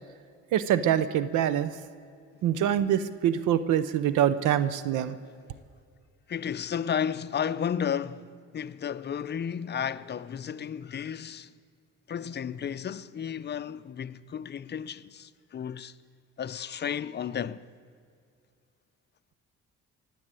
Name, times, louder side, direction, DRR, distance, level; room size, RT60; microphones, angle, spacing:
voice 1, 0.5-1.8 2.4-5.2, right 10 dB, 85° right, 0.6 m, -25 dB
voice 2, 6.3-11.5 12.1-15.9 16.4-17.6, left 8 dB, 35° left, 0.5 m, -33 dB
18.0 x 7.7 x 8.9 m
cardioid pair, 90°, 30 cm